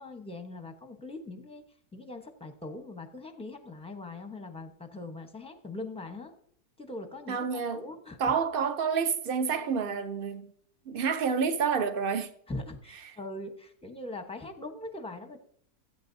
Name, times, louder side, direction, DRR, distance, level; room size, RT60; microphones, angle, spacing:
voice 1, 0.0-1.6 1.9-6.3 6.8-8.3 12.5-15.4, left 2 dB, 5° left, 0.7 m, -41 dB
voice 2, 7.3-7.8 8.2-10.5 10.9-12.3, right 6 dB, 50° right, 0.7 m, -28 dB
16.0 x 8.6 x 2.7 m
omnidirectional pair, 1.8 m